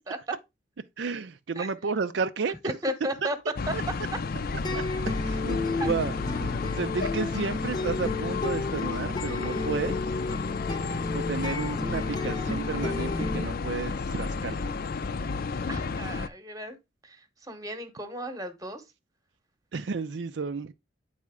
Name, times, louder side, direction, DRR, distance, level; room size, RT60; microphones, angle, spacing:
voice 1, 1.0-2.7 5.2-6.1 6.4-10.0 11.1-14.6 19.7-20.7, right 5 dB, 75° right, 0.5 m, -32 dB
voice 2, 2.6-4.2 5.8-5.9 15.7-16.8 17.0-18.8, right 1 dB, 20° right, 1.0 m, -34 dB
sound 1, 3.6-16.3, left 4 dB, 55° left, 0.5 m, -32 dB
sound 2, 4.6-13.5, left 3 dB, 20° left, 0.7 m, -32 dB
8.7 x 4.2 x 3.6 m
head